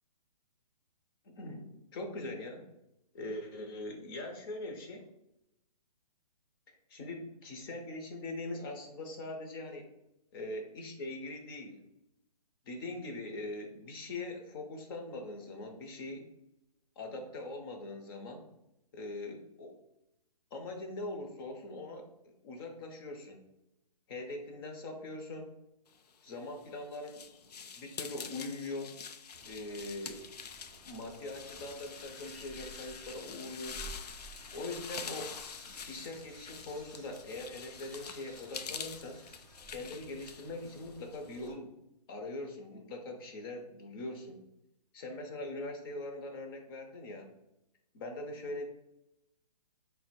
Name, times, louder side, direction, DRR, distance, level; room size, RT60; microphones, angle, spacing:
voice 1, 1.2-2.6 3.1-5.1 6.9-9.9 10.3-11.8 12.7-16.3 17.0-18.4 18.9-19.8 20.5-23.4 24.1-25.5 26.2-27.2 27.8-28.9 29.5-30.3 30.8-33.9 34.5-35.3 35.8-39.2 39.7-41.7 42.1-44.4 44.9-47.3 47.9-48.6, left 2 dB, 35° left, 4 dB, 0.7 m, -42 dB
sound 1, 26.3-41.5, left 6 dB, 80° left, 0.4 m, -46 dB
sound 2, 29.3-41.5, right 1 dB, 5° left, 0.4 m, -54 dB
4.1 x 2.1 x 4.1 m, 0.87 s
hypercardioid pair, 135°, 20 cm